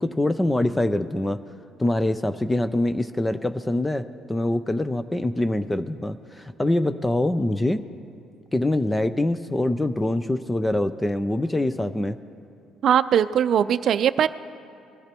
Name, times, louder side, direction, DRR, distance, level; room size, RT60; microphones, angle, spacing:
voice 1, 0.0-1.4 1.8-7.8 8.5-12.2, left 1 dB, 10° left, 11 dB, 0.4 m, -24 dB
voice 2, 12.8-14.3, right 9 dB, 55° right, 13 dB, 0.5 m, -20 dB
22.0 x 13.5 x 3.0 m, 2.4 s
cardioid pair, 110°, 0 cm